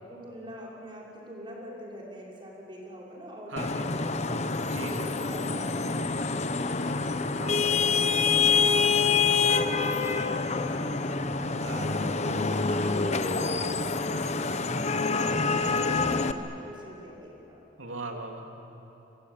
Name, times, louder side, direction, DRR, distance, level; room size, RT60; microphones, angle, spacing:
voice 1, 0.1-4.4 4.8-7.0 7.4-11.0 11.3-14.7 15.2-17.6, equal, 25° right, -4 dB, 6.0 m, -44 dB
voice 2, 3.5-3.8 4.7-5.2 7.4-7.6 11.6-11.8 15.1-15.4 17.8-18.4, right 2 dB, 90° right, 2 dB, 3.0 m, -38 dB
Vehicle horn car horn honking / Traffic noise roadway noise, 3.6-16.3, left 4 dB, 35° left, 0.9 m, -26 dB
29.5 x 24.0 x 8.4 m, 3.0 s
head